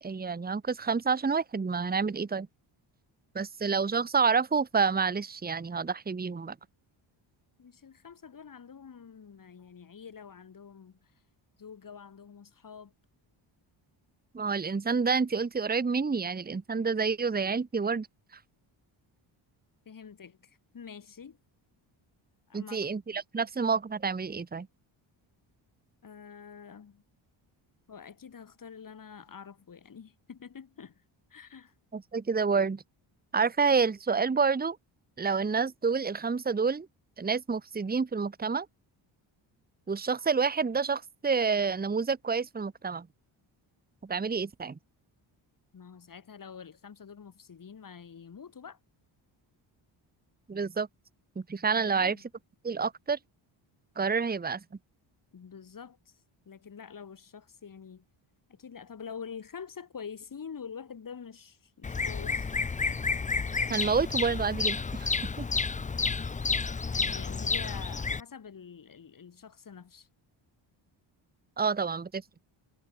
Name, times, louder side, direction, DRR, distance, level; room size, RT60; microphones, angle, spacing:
voice 1, 0.0-2.5 3.3-6.5 14.3-18.1 22.5-24.7 31.9-32.8 33.3-34.8 35.2-36.9 37.2-38.7 39.9-43.1 44.0-44.8 50.5-50.9 51.5-52.2 52.6-53.2 54.0-54.6 63.7-65.1 65.4-65.5 71.6-72.2, right 5 dB, 20° right, 1.2 m, -28 dB
voice 2, 7.6-11.1 11.6-12.9 19.9-21.4 22.5-22.9 26.0-27.0 27.9-31.0 31.3-31.7 45.7-48.8 51.9-52.3 55.3-56.2 56.5-58.0 58.5-62.5 66.9-70.1, left 6 dB, 40° left, 4.2 m, -46 dB
Bird vocalization bird call bird song, 61.8-68.2, left 4 dB, 15° left, 0.5 m, -30 dB
cardioid pair, 115°, 48 cm